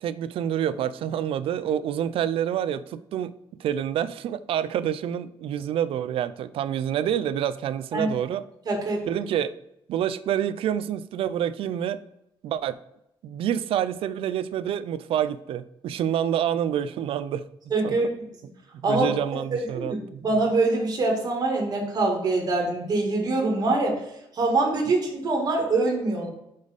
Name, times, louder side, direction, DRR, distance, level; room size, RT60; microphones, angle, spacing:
voice 1, 0.0-3.3 3.6-8.4 9.1-9.5 9.9-12.0 12.4-12.8 13.2-17.4 17.8-18.0 18.8-20.2, right 10 dB, 80° right, 14 dB, 0.4 m, -27 dB
voice 2, 8.7-9.2 17.7-18.1 18.8-19.1 19.7-24.0 24.3-26.3, right 3 dB, 40° right, 0 dB, 1.9 m, -24 dB
5.2 x 4.1 x 5.0 m, 0.83 s
cardioid pair, 145°, 9 cm